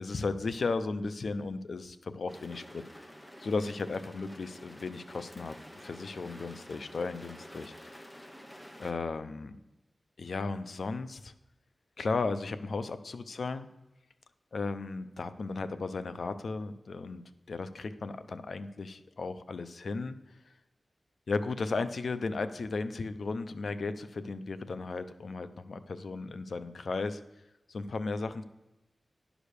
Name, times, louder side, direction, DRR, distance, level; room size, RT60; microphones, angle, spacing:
voice 1, 0.0-2.8 3.4-5.6 5.8-8.2 8.8-9.6 10.2-11.3 12.0-13.7 14.5-20.2 21.3-27.2 27.7-28.4, left 3 dB, 75° left, 11 dB, 0.6 m, -35 dB
sound 1, 2.3-8.9, equal, 10° left, 1.1 m, -50 dB
11.0 x 5.1 x 6.6 m, 0.98 s
wide cardioid pair, 90°, 0 cm